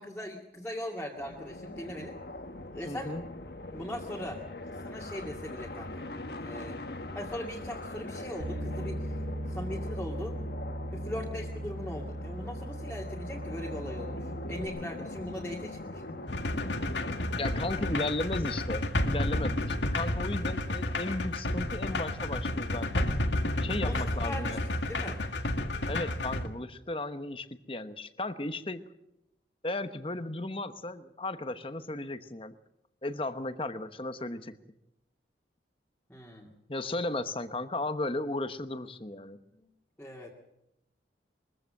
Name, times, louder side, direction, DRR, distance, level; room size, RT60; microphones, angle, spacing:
voice 1, 0.0-2.1 2.7-3.2 3.7-4.4 4.8-6.0 6.4-6.8 7.1-9.1 9.5-10.3 10.9-16.0 23.8-25.2 36.1-36.5 39.5-39.7 40.0-40.3, left 1 dB, 10° left, -3 dB, 2.3 m, -40 dB
sound 1, 1.2-18.1, left 2 dB, 60° left, 1.4 m, -42 dB
voice 2, 2.8-3.2 17.4-23.1 23.6-24.6 25.9-28.8 29.6-32.5 33.0-34.6 36.7-39.4, left 2 dB, 30° left, 11 dB, 1.0 m, -35 dB
Bass guitar, 8.4-14.7, equal, 55° right, 3.2 m, -38 dB
sound 2, 16.3-26.5, left 1 dB, 80° left, 1.9 m, -31 dB
23.0 x 15.5 x 7.7 m, 0.86 s
head